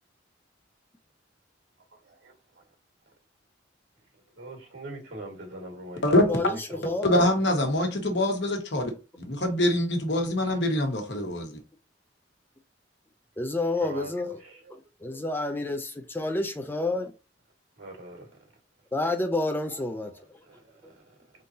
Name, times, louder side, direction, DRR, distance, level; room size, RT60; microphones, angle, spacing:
voice 1, 2.0-2.6 4.4-7.3 13.8-14.1 14.4-14.8 17.8-18.4 19.7-21.2, right 2 dB, 75° right, 1.8 m, -43 dB
voice 2, 6.3-7.2 13.4-14.4 14.7-17.1 18.9-20.1, left 2 dB, 10° left, 0.4 m, -29 dB
voice 3, 7.0-8.9 9.3-11.6, left 1 dB, 65° left, 1.2 m, -24 dB
4.0 x 3.7 x 2.7 m
head